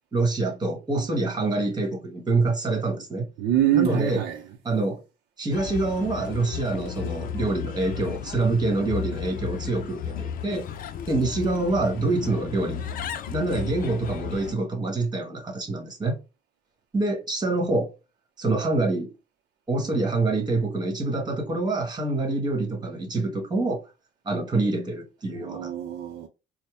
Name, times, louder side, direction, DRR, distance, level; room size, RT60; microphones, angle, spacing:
voice 1, 0.1-3.3 3.7-4.2 4.6-5.0 5.4-10.7 11.1-12.8 13.3-16.2 16.9-17.9 18.4-19.1 19.7-23.8 24.2-25.7, right 2 dB, 25° right, 1.4 m, -26 dB
voice 2, 3.4-4.4 25.3-26.3, right 11 dB, 75° right, 0.6 m, -25 dB
Bird, 5.5-14.5, left 8 dB, 55° left, 0.5 m, -34 dB
4.2 x 2.1 x 3.2 m
cardioid pair, 110°, 17 cm